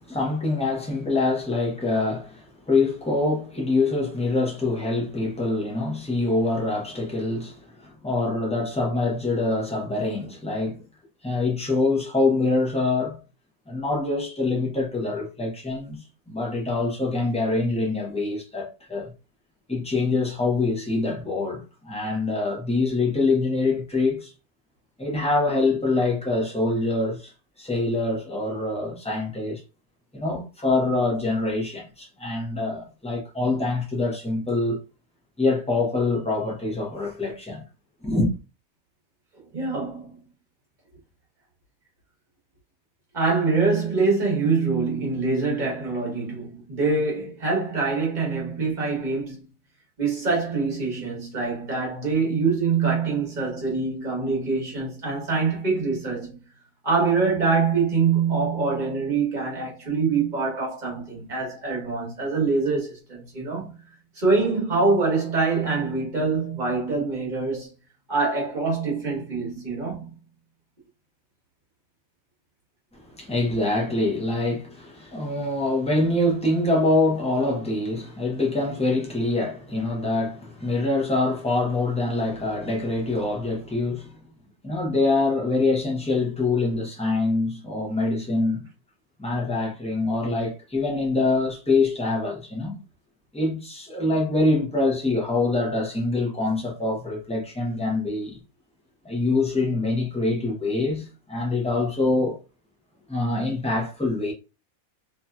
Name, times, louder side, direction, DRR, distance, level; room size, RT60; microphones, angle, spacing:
voice 1, 0.0-10.8 11.2-13.2 13.7-16.0 16.3-19.1 19.7-24.3 25.0-27.3 27.6-29.6 30.1-34.8 35.4-37.6 38.0-38.3 73.0-84.2 84.6-88.7 89.2-92.8 93.3-98.4 99.0-102.4 103.1-104.3, left 2 dB, 5° left, 0.5 m, -25 dB
voice 2, 39.5-40.2 43.1-49.4 50.0-56.4 56.8-63.7 64.1-67.7 68.1-70.1, right 4 dB, 35° right, 1.3 m, -24 dB
3.1 x 2.8 x 2.3 m
omnidirectional pair, 1.5 m